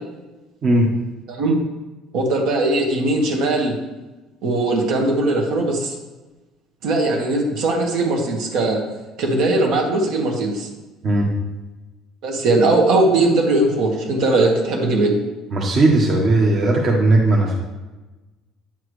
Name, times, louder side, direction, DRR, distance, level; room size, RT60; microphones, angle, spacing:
voice 1, 1.3-1.6 2.1-3.7 4.4-6.0 6.8-8.8 9.2-10.7 12.2-15.1, right 2 dB, 65° right, 1 dB, 1.7 m, -19 dB
voice 2, 15.5-17.6, right 2 dB, 40° right, -2 dB, 1.2 m, -17 dB
8.9 x 7.3 x 3.2 m, 1.1 s
cardioid pair, 150°, 0 cm